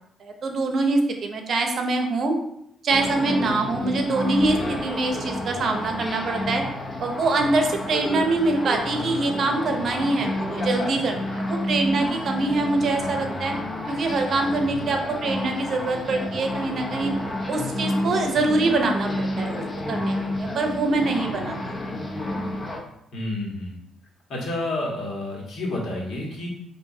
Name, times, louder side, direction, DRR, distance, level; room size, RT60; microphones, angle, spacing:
voice 1, 0.2-2.3 2.8-6.6 7.0-13.6 13.9-17.1 17.5-19.6 19.9-22.0, right 3 dB, 55° right, 4 dB, 0.7 m, -24 dB
sound 1, 2.9-22.8, left 1 dB, 30° left, 0.7 m, -30 dB
voice 2, 23.1-23.8 24.3-26.5, left 2 dB, 65° left, -3 dB, 1.4 m, -30 dB
5.7 x 2.6 x 2.7 m, 0.75 s
cardioid pair, 90°, 0 cm